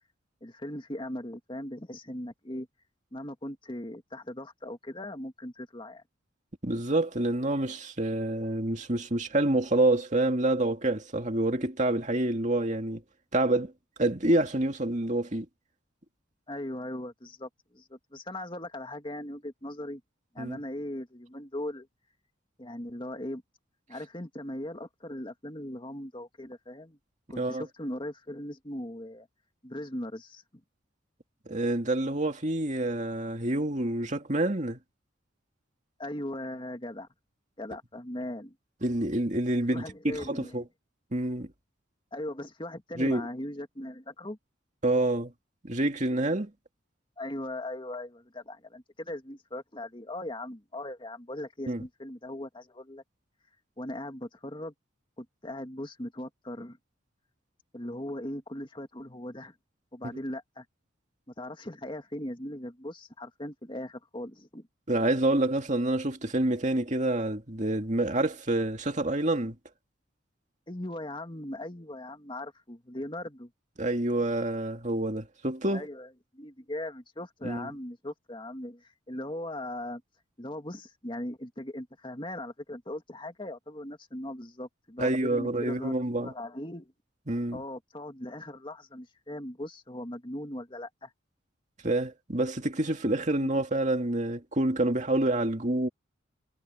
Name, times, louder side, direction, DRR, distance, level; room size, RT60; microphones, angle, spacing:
voice 1, 0.4-2.7 3.1-6.0 16.5-20.0 20.3-21.9 22.6-23.4 23.9-27.0 27.3-29.3 29.6-30.4 36.0-37.1 37.6-38.6 39.7-40.6 42.1-44.4 47.2-53.0 53.8-54.7 55.2-56.8 57.7-59.5 59.9-60.7 61.4-64.7 70.7-73.5 75.7-80.0 80.4-86.9 87.5-91.1, left 1 dB, 25° left, 2.0 m, -39 dB
voice 2, 6.6-13.0 13.3-13.7 14.0-15.5 20.4-20.6 27.4-27.6 31.5-34.8 38.8-40.6 41.1-41.5 43.0-43.3 44.8-45.3 45.6-46.5 51.7-51.8 64.9-69.6 73.8-75.9 77.4-77.7 85.0-86.3 87.3-87.6 91.8-95.9, right 1 dB, 40° right, 2.3 m, -27 dB
head